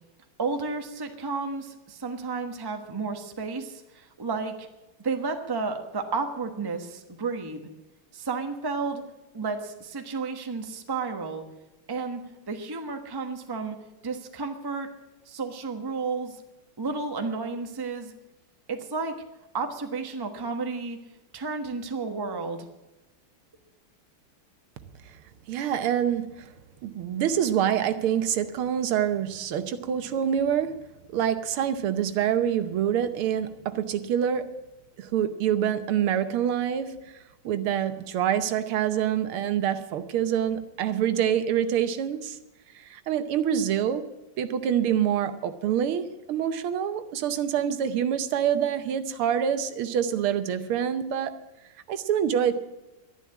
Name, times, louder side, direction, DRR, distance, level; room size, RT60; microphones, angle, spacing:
voice 1, 0.4-4.7 5.0-7.6 8.1-9.1 9.3-11.4 11.9-13.8 14.0-14.9 15.3-16.4 16.8-18.1 18.7-19.2 19.5-21.0 21.3-22.7, right 4 dB, 15° right, 0.8 m, -32 dB
voice 2, 25.5-26.5 26.8-30.8 31.1-34.6 35.0-37.1 37.5-42.4 42.8-44.1 44.4-51.4 51.9-52.5, right 9 dB, 80° right, 1.8 m, -26 dB
11.5 x 11.0 x 8.5 m
omnidirectional pair, 2.4 m